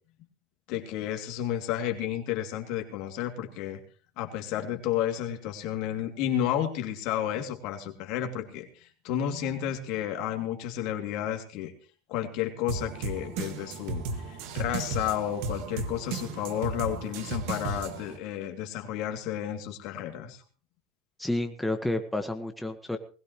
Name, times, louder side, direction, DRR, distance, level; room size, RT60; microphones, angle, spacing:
voice 1, 0.7-3.8 4.2-11.7 12.1-20.4, left 10 dB, 65° left, 4 dB, 2.8 m, -32 dB
sound 1, 12.7-18.2, right 3 dB, 70° right, 2.0 m, -35 dB
voice 2, 21.2-23.0, left 1 dB, 5° left, 5 dB, 1.6 m, -30 dB
20.5 x 16.0 x 3.2 m, 0.40 s
hypercardioid pair, 85°, 0 cm